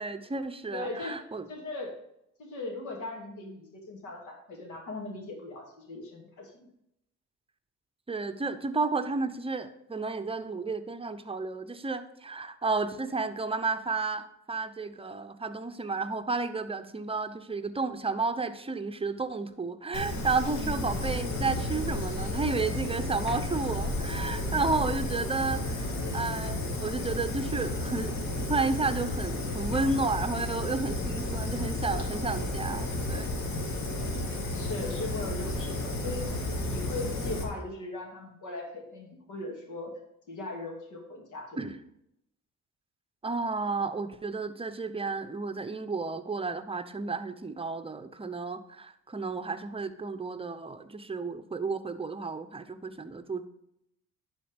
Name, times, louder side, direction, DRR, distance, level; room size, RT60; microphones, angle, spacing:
voice 1, 0.0-1.5 8.1-25.8 26.1-28.1 28.5-33.3 41.6-41.7 43.2-53.4, right 3 dB, 20° right, 9 dB, 0.7 m, -32 dB
voice 2, 0.7-1.2 1.5-2.0 2.4-6.7 20.6-20.8 34.3-36.2 36.7-39.9 40.3-41.6, left 2 dB, 80° left, 2 dB, 2.3 m, -39 dB
Fire, 19.9-37.4, left 2 dB, 65° left, 2.1 m, -32 dB
11.0 x 4.3 x 5.2 m, 0.79 s
cardioid pair, 90°, 30 cm